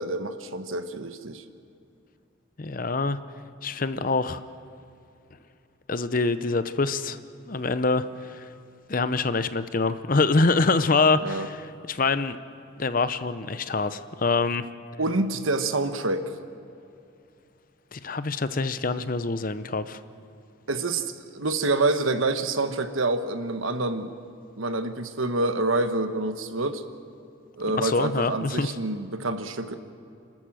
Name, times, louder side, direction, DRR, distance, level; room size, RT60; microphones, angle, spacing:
voice 1, 0.0-1.4 11.2-11.5 15.0-16.3 20.7-21.1 21.3-24.1 24.6-26.8 27.6-29.7, right 2 dB, 85° right, 8 dB, 1.3 m, -27 dB
voice 2, 2.6-3.2 3.6-4.4 5.9-7.2 7.5-8.5 8.9-12.4 12.8-14.6 17.9-20.0 27.7-28.8, left 3 dB, 45° left, 12 dB, 0.7 m, -25 dB
29.5 x 13.5 x 7.6 m, 2.6 s
head